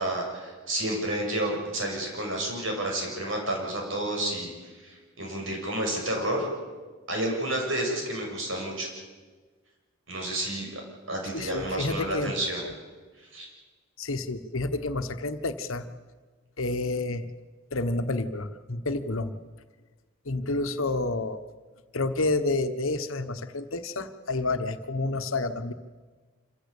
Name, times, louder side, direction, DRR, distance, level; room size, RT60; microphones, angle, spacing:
voice 1, 0.0-4.5 4.8-6.5 7.1-8.9 10.1-10.8 11.1-12.6 13.3-13.5, right 1 dB, 70° right, 0 dB, 6.6 m, -30 dB
voice 2, 11.3-12.3 14.0-15.8 16.6-17.2 17.7-19.3 20.2-21.4 21.9-25.7, left 2 dB, 85° left, 9 dB, 1.3 m, -29 dB
26.5 x 15.5 x 8.5 m, 1.4 s
head